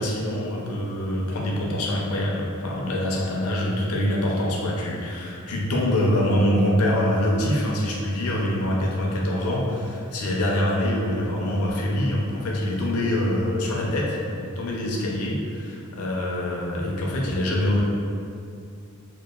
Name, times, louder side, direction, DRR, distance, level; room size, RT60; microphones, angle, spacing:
voice 1, 0.0-17.8, left 1 dB, 90° left, -2 dB, 0.5 m, -25 dB
2.8 x 2.2 x 2.2 m, 2.4 s
head